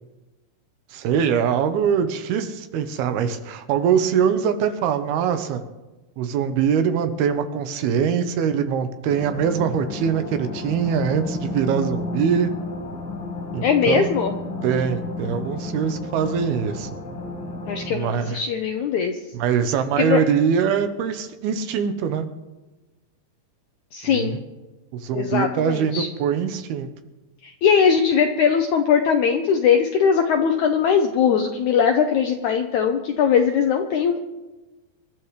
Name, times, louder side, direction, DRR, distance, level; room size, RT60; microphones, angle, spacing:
voice 1, 0.9-5.6 6.2-12.5 13.5-14.1 14.6-16.9 17.9-18.4 19.4-22.3 24.1-24.3 24.9-26.9, right 7 dB, 85° right, 9 dB, 2.9 m, -23 dB
sound 1, 9.1-18.0, left 2 dB, 50° left, 1.5 m, -32 dB
voice 2, 13.6-14.4 17.7-19.2 20.0-20.2 23.9-24.4 25.1-26.1 27.4-34.2, left 7 dB, 80° left, 5 dB, 1.7 m, -20 dB
25.5 x 12.0 x 3.2 m, 1.1 s
omnidirectional pair, 4.3 m